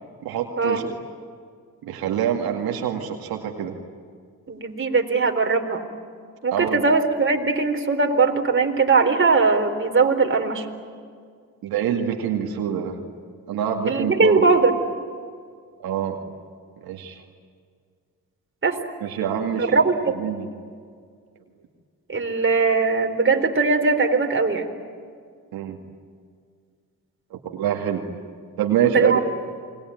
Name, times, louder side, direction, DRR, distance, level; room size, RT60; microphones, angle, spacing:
voice 1, 0.2-0.8 1.8-3.7 6.5-6.8 11.6-13.0 13.5-14.4 15.8-16.2 16.8-17.2 19.0-19.8 20.1-20.5 25.5-25.8 27.3-28.0 28.6-29.2, right 9 dB, 85° right, 2 dB, 2.3 m, -25 dB
voice 2, 4.5-5.8 6.4-10.7 13.9-14.7 18.6-18.8 19.5-20.2 22.1-24.7 28.9-29.2, right 4 dB, 35° right, 4 dB, 4.1 m, -20 dB
28.0 x 22.0 x 9.3 m, 2.1 s
supercardioid pair, 55°, 35 cm